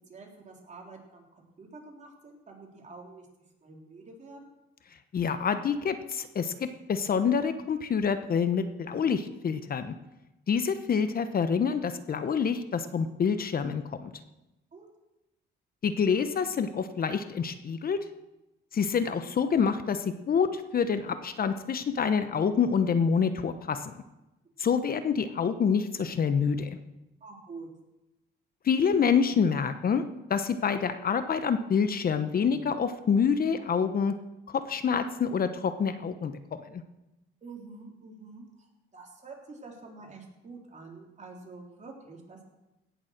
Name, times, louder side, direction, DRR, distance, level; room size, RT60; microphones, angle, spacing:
voice 1, 0.1-3.3 3.6-4.5 14.7-14.9 27.2-27.7 37.4-42.4, right 3 dB, 35° right, 0 dB, 3.7 m, -47 dB
voice 2, 5.1-9.9 10.5-14.1 15.8-18.0 18.7-24.0 24.6-26.8 28.6-30.0 30.3-34.1 34.5-36.8, left 6 dB, 50° left, 10 dB, 1.0 m, -27 dB
17.0 x 7.2 x 6.6 m, 0.97 s
cardioid pair, 90°, 20 cm